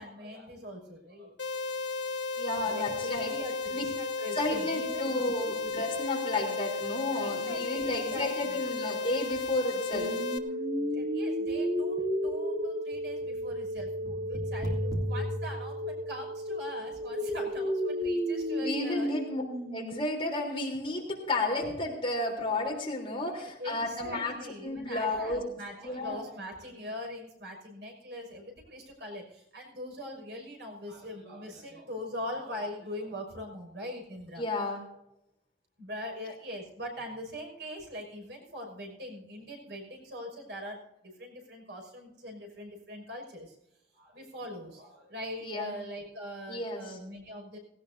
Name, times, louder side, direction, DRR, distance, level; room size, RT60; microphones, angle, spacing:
voice 1, 0.0-1.3 2.7-5.2 7.2-8.6 10.8-19.1 23.2-34.4 35.8-43.6 43.9-47.6, equal, 75° right, 2 dB, 5.9 m, -42 dB
sound 1, 1.4-10.4, left 4 dB, 85° left, 1.3 m, -34 dB
voice 2, 2.4-3.4 3.7-3.8 4.3-10.2 18.6-19.4 19.7-24.4 24.6-25.4 25.8-26.2 34.4-34.8 45.4-45.8 46.5-47.0, left 2 dB, 30° left, 0 dB, 3.5 m, -32 dB
sound 2, 9.9-19.9, equal, 20° right, 3.2 m, -32 dB
19.0 x 17.0 x 2.7 m, 0.86 s
head